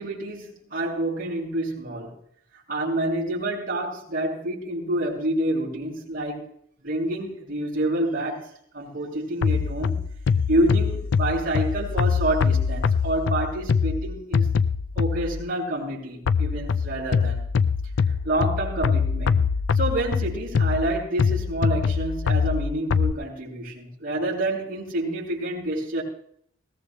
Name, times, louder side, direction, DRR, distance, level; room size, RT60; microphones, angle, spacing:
voice 1, 0.0-2.1 2.7-6.5 6.8-8.5 8.7-10.0 10.5-14.5 14.9-17.4 18.1-19.4 19.7-26.0, right 1 dB, 45° right, -6 dB, 5.6 m, -28 dB
sound 1, 9.4-15.5 16.3-23.1, left 5 dB, 65° left, 0.4 m, -24 dB
20.5 x 18.5 x 2.2 m, 0.66 s
head